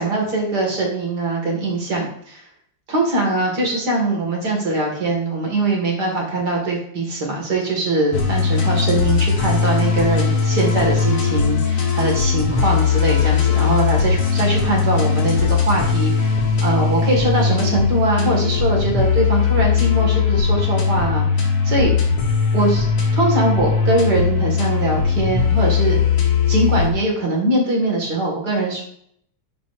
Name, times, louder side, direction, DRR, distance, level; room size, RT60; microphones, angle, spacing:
voice 1, 0.0-2.4 2.9-21.9 22.5-22.8 23.1-26.0 26.5-28.8, right 2 dB, 50° right, -1 dB, 2.5 m, -22 dB
sound 1, 8.1-26.9, left 6 dB, 70° left, 2.3 m, -19 dB
11.5 x 5.1 x 2.6 m, 0.67 s
omnidirectional pair, 2.4 m